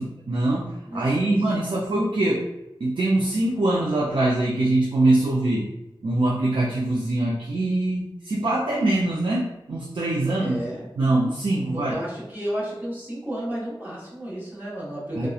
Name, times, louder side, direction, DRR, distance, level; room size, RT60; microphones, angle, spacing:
voice 1, 0.0-2.5 2.8-5.7 6.0-10.7 11.0-11.9 15.1-15.3, right 2 dB, 70° right, -4 dB, 0.4 m, -23 dB
voice 2, 0.9-1.8 10.2-10.9 11.7-15.3, equal, 25° right, -8 dB, 1.1 m, -33 dB
2.7 x 2.1 x 2.3 m, 0.89 s
wide cardioid pair, 55°, 9 cm